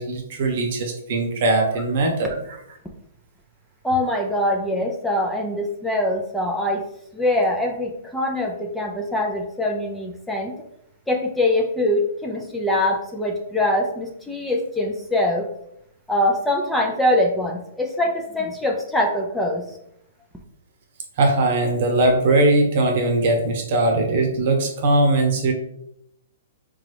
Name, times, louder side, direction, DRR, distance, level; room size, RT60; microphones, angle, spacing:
voice 1, 0.0-2.4 21.2-25.5, right 2 dB, 55° right, 2 dB, 1.0 m, -20 dB
voice 2, 3.8-6.8 7.1-10.5 11.1-15.5 16.1-19.6, left 1 dB, 5° left, 0 dB, 0.4 m, -23 dB
3.8 x 2.3 x 3.3 m, 0.76 s
hypercardioid pair, 135°, 0 cm